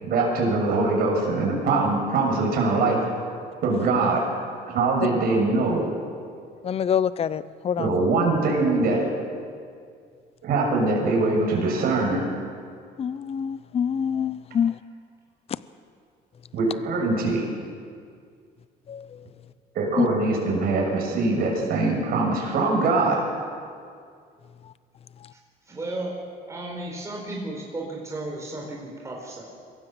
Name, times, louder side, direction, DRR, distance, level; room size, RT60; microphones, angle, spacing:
voice 1, 0.0-3.0 3.6-4.2 4.7-5.9 7.8-9.1 10.4-12.2 16.5-17.5 19.7-23.2, right 3 dB, 65° right, -1 dB, 6.6 m, -22 dB
voice 2, 6.6-8.0 13.0-14.7 18.9-19.1 20.0-20.1, left 8 dB, 35° left, 16 dB, 0.6 m, -25 dB
voice 3, 25.7-26.2 26.5-29.5, right 2 dB, 20° right, -2 dB, 4.3 m, -34 dB
23.0 x 16.5 x 7.8 m, 2.2 s
cardioid pair, 110°, 17 cm